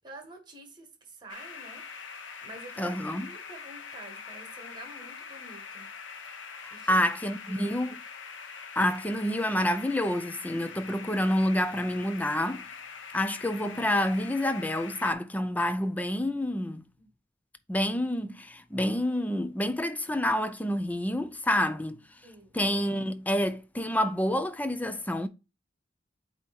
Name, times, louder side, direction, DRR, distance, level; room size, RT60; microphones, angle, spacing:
voice 1, 0.0-1.8 2.4-6.0 6.7-7.1 7.5-7.8 17.0-17.1 22.2-22.6, right 1 dB, 25° right, 1.6 m, -48 dB
sound 1, 1.3-15.1, left 5 dB, 80° left, 0.9 m, -44 dB
voice 2, 2.8-3.3 6.6-8.0 8.8-12.6 13.1-16.8 17.7-22.0 22.5-25.3, left 1 dB, 10° left, 0.4 m, -28 dB
8.3 x 2.9 x 4.2 m
head